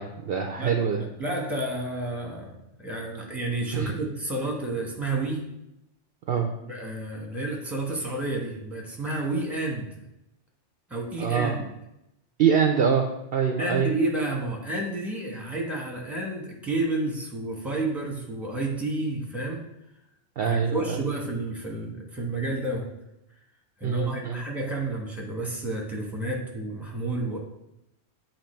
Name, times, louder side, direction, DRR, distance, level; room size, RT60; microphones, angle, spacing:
voice 1, 0.0-1.0 3.7-3.9 6.3-6.5 11.2-11.5 12.4-13.9 20.4-21.0 23.8-24.4, right 7 dB, 60° right, 4 dB, 0.7 m, -24 dB
voice 2, 0.6-5.5 6.6-9.9 10.9-11.7 13.6-19.6 20.4-22.9 23.8-27.4, right 2 dB, ahead, 0 dB, 1.1 m, -30 dB
8.8 x 3.0 x 4.3 m, 0.86 s
omnidirectional pair, 1.2 m